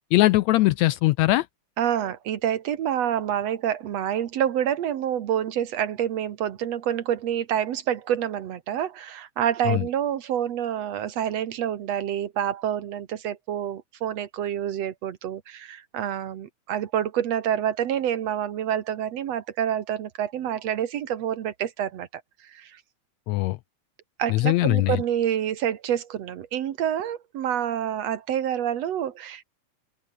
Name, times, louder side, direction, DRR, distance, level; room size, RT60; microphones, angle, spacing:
voice 1, 0.1-1.5 9.7-9.8 23.3-23.6 24.3-25.0, left 18 dB, 80° left, 1.7 m, -20 dB
voice 2, 1.8-22.8 24.2-29.4, right 10 dB, 60° right, 2.2 m, -27 dB
open air
omnidirectional pair, 3.5 m